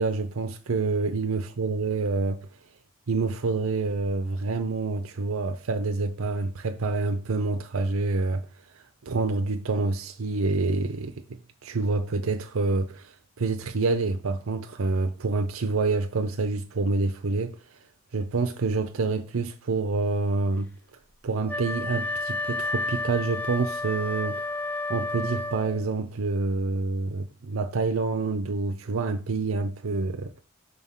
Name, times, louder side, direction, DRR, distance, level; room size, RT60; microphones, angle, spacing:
voice 1, 0.0-2.5 3.1-8.4 9.0-17.6 18.1-20.7 21.2-24.6 24.9-30.3, right 3 dB, 90° right, 0.6 m, -27 dB
Wind instrument woodwind instrument, 21.5-25.9, left 2 dB, 10° left, 0.5 m, -31 dB
6.5 x 3.5 x 5.6 m
head